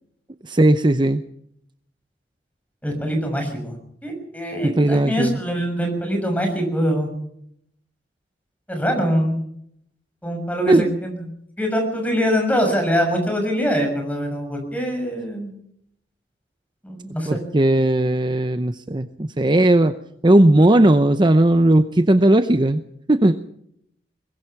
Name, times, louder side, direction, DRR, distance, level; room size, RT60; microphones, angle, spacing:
voice 1, 0.4-1.2 4.6-5.4 10.7-10.9 17.3-19.9 20.2-22.8 23.1-23.3, right 1 dB, 25° right, 10 dB, 0.8 m, -17 dB
voice 2, 2.8-3.7 4.0-7.1 8.7-9.4 10.2-11.2 11.6-15.5 16.8-17.4, equal, 10° left, 4 dB, 6.6 m, -23 dB
23.0 x 20.0 x 5.9 m, 0.72 s
head